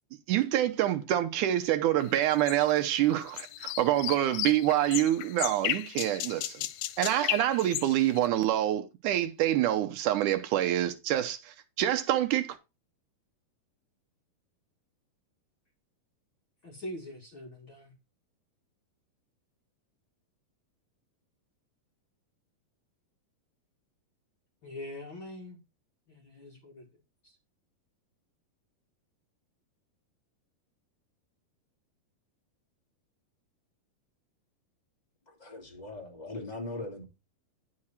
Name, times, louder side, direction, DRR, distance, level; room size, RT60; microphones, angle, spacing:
voice 1, 0.3-6.7 7.0-12.5, right 13 dB, 85° right, 1.7 m, -26 dB
sound 1, 2.1-8.3, left 15 dB, 85° left, 2.7 m, -35 dB
voice 2, 16.6-17.9 24.6-25.6 26.1-26.9, left 1 dB, 40° left, 2.1 m, -43 dB
voice 3, 35.3-37.0, left 2 dB, 15° left, 1.5 m, -40 dB
9.7 x 6.4 x 4.2 m
omnidirectional pair, 4.7 m